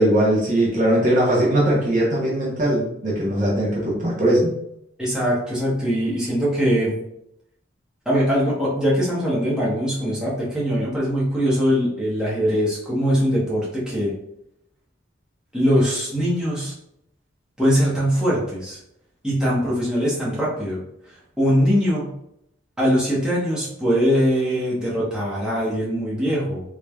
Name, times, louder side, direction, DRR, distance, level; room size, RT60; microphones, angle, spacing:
voice 1, 0.0-4.5, right 1 dB, 40° right, -5 dB, 0.8 m, -20 dB
voice 2, 5.0-6.9 8.0-14.1 15.5-16.7 17.6-18.8 19.2-20.8 21.4-22.1 22.8-26.6, equal, 5° right, -8 dB, 1.1 m, -21 dB
3.8 x 3.3 x 2.3 m, 0.77 s
head